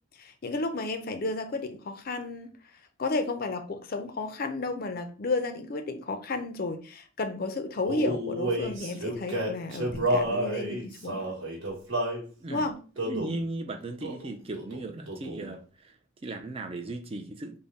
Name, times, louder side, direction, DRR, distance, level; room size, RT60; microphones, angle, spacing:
voice 1, 0.2-2.5 3.0-11.2 12.5-12.8, left 3 dB, 45° left, 0.5 m, -32 dB
Male singing, 7.8-12.2 13.0-13.4 14.0-14.3 14.6-15.5, right 1 dB, 75° right, 1.1 m, -30 dB
voice 2, 13.1-15.9 16.2-17.6, right 2 dB, 30° right, 0.4 m, -36 dB
3.6 x 2.1 x 4.0 m
head